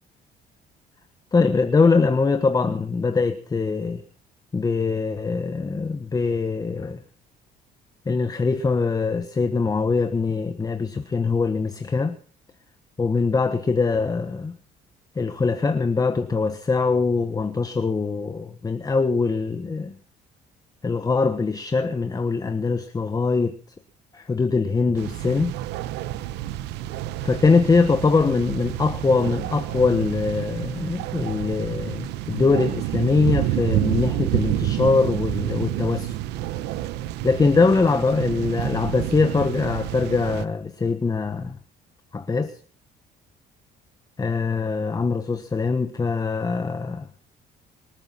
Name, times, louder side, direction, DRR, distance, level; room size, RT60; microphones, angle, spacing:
voice 1, 1.3-4.0 4.5-7.0 8.0-12.2 13.0-14.6 15.1-19.9 20.8-23.6 24.1-25.5 27.2-36.2 37.2-41.6 42.1-42.6 44.2-47.1, left 4 dB, 20° left, 1.3 m, -22 dB
sound 1, 24.9-40.4, right 13 dB, 90° right, 0.9 m, -29 dB
25.0 x 9.1 x 5.8 m
cardioid pair, 110°, 17 cm